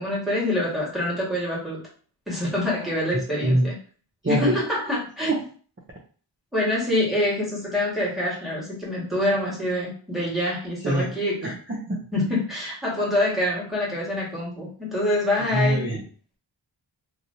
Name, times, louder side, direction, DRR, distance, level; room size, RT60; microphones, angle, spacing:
voice 1, 0.0-1.9 2.3-3.7 4.3-5.4 6.5-11.4 12.1-15.8, left 1 dB, ahead, -7 dB, 1.6 m, -26 dB
voice 2, 4.2-4.6 5.3-5.4 10.8-11.1 11.4-12.1 15.5-16.1, right 1 dB, 25° right, -3 dB, 0.6 m, -24 dB
3.1 x 2.7 x 2.6 m, 0.42 s
wide cardioid pair, 90°, 48 cm